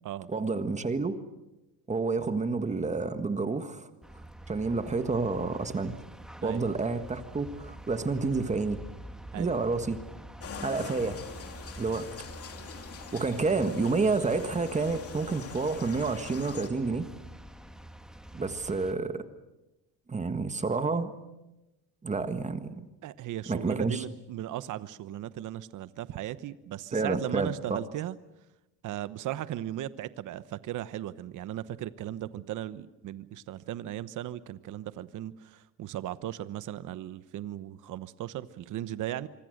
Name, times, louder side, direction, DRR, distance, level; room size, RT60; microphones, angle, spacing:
voice 1, 0.3-1.2 1.9-3.9 4.5-5.9 6.4-8.8 9.3-10.0 10.6-11.2 11.8-12.1 13.1-17.1 18.3-19.2 20.1-21.1 22.0-22.9 23.5-24.0 26.9-27.8, right 4 dB, 20° right, 9 dB, 1.6 m, -29 dB
sound 1, 4.0-18.9, right 1 dB, ahead, 1.7 m, -47 dB
sound 2, 10.4-16.7, left 6 dB, 40° left, 2.7 m, -44 dB
voice 2, 23.0-28.2 28.8-39.3, right 12 dB, 50° right, 14 dB, 1.1 m, -37 dB
25.5 x 25.0 x 6.6 m, 0.98 s
cardioid pair, 130°, 38 cm